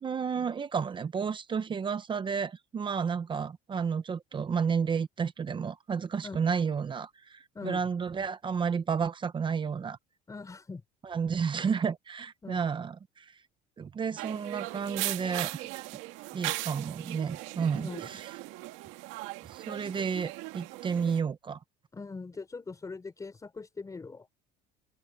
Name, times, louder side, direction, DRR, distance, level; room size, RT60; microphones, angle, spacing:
voice 1, 0.0-10.0 11.0-13.3 13.8-15.7 16.3-18.3 19.5-21.6, right 6 dB, 25° right, 0.8 m, -31 dB
voice 2, 7.5-7.9 10.3-10.8 12.4-12.7 17.7-18.1 21.9-24.3, left 4 dB, 15° left, 4.9 m, -41 dB
sound 1, 14.2-21.2, right 19 dB, 75° right, 1.7 m, -38 dB
cardioid pair, 140°, 21 cm